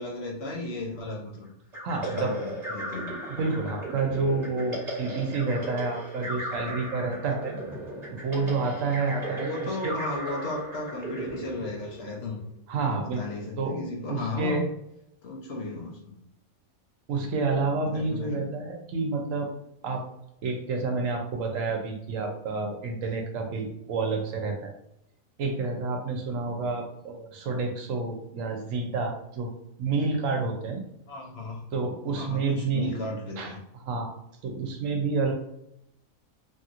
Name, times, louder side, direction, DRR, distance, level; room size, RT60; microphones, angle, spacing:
voice 1, 0.0-1.4 1.9-3.1 9.2-12.5 12.8-14.6 15.2-16.2 17.8-18.5 31.1-31.6 32.2-33.6, left 2 dB, 55° left, -3 dB, 0.8 m, -35 dB
sound 1, 1.7-12.3, right 1 dB, 35° right, 1.0 m, -36 dB
voice 2, 1.8-2.3 3.3-7.6 8.2-9.5 9.8-9.9 12.7-13.2 13.6-13.8 14.1-14.7 17.1-19.5 19.8-20.0 20.4-24.7 25.4-29.5 29.8-30.8 31.7-32.9 33.4-33.5 33.8-34.1 34.4-35.3, right 4 dB, 75° right, 3 dB, 1.0 m, -29 dB
2.9 x 2.8 x 2.4 m, 0.81 s
omnidirectional pair, 1.4 m